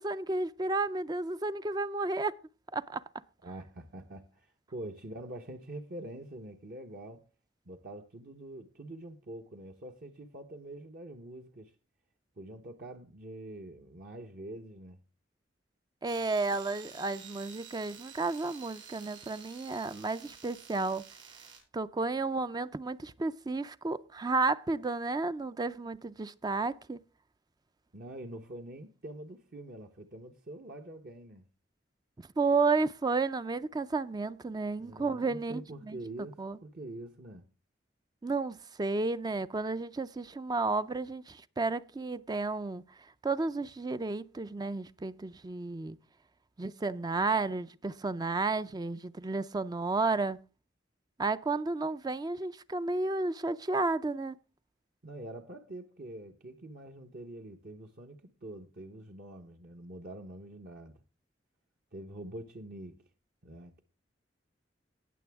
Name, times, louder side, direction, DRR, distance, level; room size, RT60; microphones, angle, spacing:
voice 1, 0.0-2.4 2.7-3.0 16.0-21.0 21.7-27.0 32.4-35.6 35.9-36.0 36.4-36.6 38.2-42.8 43.2-46.0 46.6-50.4 51.2-54.4, right 3 dB, 20° right, 0.4 m, -32 dB
voice 2, 3.4-7.2 7.7-11.7 12.4-15.0 27.9-31.5 34.8-37.5 55.0-61.0 61.9-63.0 63.4-63.8, right 1 dB, 50° right, 1.0 m, -45 dB
sound 1, 16.0-21.6, right 6 dB, 90° right, 7.7 m, -50 dB
18.5 x 6.9 x 3.5 m
head